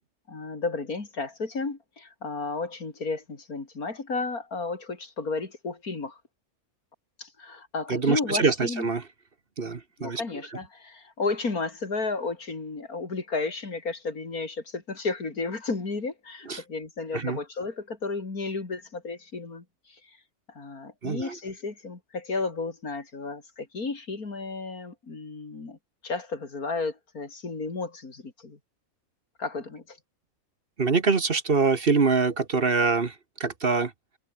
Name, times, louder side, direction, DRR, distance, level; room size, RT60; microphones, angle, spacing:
voice 1, 0.3-6.2 7.2-8.9 10.0-19.6 20.6-25.8 26.0-28.6 29.4-30.0, left 3 dB, 90° left, 3.9 m, -33 dB
voice 2, 7.9-9.0 9.6-10.2 16.5-16.6 17.1-17.4 21.0-21.4 30.8-33.1 33.4-33.9, right 4 dB, 40° right, 1.5 m, -24 dB
omnidirectional pair, 1.5 m